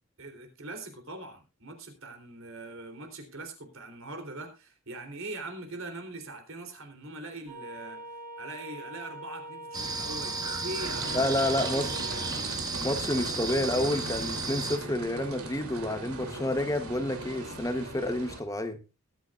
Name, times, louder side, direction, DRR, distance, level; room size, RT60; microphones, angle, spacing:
voice 1, 0.2-12.2, right 2 dB, 70° right, 5 dB, 3.5 m, -42 dB
sound 1, 7.5-12.3, right 1 dB, 40° right, 5.4 m, -43 dB
sound 2, 9.7-14.8, right 3 dB, 15° right, 1.2 m, -34 dB
sound 3, 10.8-18.4, right 2 dB, 85° right, 3.0 m, -39 dB
voice 2, 11.1-11.9 12.8-18.8, left 1 dB, 15° left, 8 dB, 1.0 m, -29 dB
21.0 x 9.5 x 2.5 m, 0.30 s
head